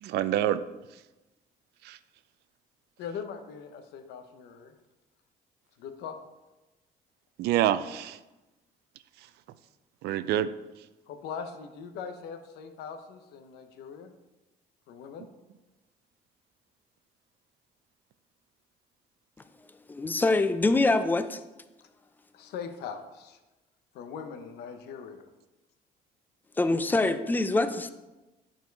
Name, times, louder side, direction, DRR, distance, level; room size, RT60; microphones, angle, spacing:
voice 1, 0.0-0.6 1.8-2.0 7.4-8.2 10.0-10.5, right 12 dB, 80° right, 14 dB, 0.4 m, -26 dB
voice 2, 3.0-4.7 5.8-6.2 11.1-14.1 14.9-15.3 22.3-23.4 23.9-25.3, left 6 dB, 90° left, 7 dB, 0.9 m, -41 dB
voice 3, 19.9-21.4 26.6-27.9, left 2 dB, 10° left, 10 dB, 0.5 m, -24 dB
9.5 x 4.4 x 4.6 m, 1.1 s
cardioid pair, 125°, 17 cm